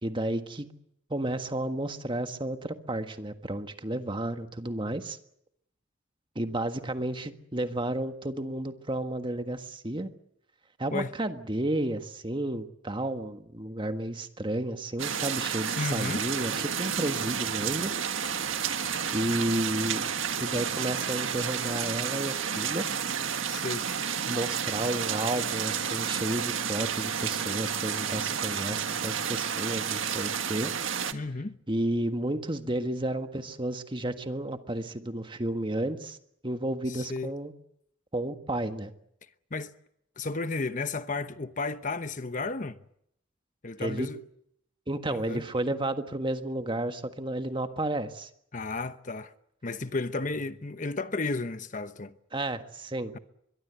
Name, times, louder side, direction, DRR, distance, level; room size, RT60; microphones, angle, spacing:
voice 1, 0.0-0.7 1.1-5.2 6.3-10.1 10.8-18.3 19.1-20.0 20.4-22.8 24.3-30.7 31.7-36.2 36.4-37.5 38.1-38.9 43.8-44.1 44.9-48.3 52.3-53.1, right 1 dB, 25° right, 1.6 m, -32 dB
sound 1, 15.0-31.1, right 7 dB, 80° right, 1.6 m, -31 dB
voice 2, 15.8-16.2 23.5-23.9 31.1-31.6 36.9-37.3 39.5-39.7 40.2-42.8 43.6-44.2 45.1-45.4 48.5-49.3 49.6-52.1, left 3 dB, 40° left, 0.9 m, -33 dB
sound 2, 16.3-36.2, left 2 dB, 60° right, 6.8 m, -54 dB
23.5 x 22.5 x 8.2 m
head